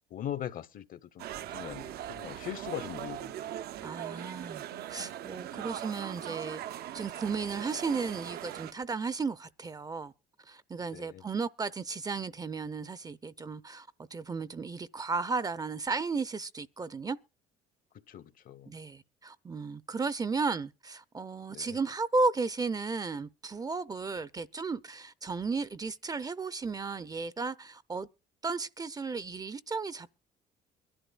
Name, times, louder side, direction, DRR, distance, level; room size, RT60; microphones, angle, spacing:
voice 1, 0.1-3.4 5.5-5.7 10.9-11.3 17.9-18.8 21.5-21.8, left 11 dB, 55° left, 0.9 m, -41 dB
sound 1, 1.2-8.7, right 11 dB, 70° right, 0.6 m, -40 dB
voice 2, 3.8-6.6 6.9-10.1 10.5-17.2 18.7-28.1 28.4-30.1, right 4 dB, 20° right, 0.5 m, -34 dB
23.0 x 11.5 x 2.3 m
cardioid pair, 110°, 17 cm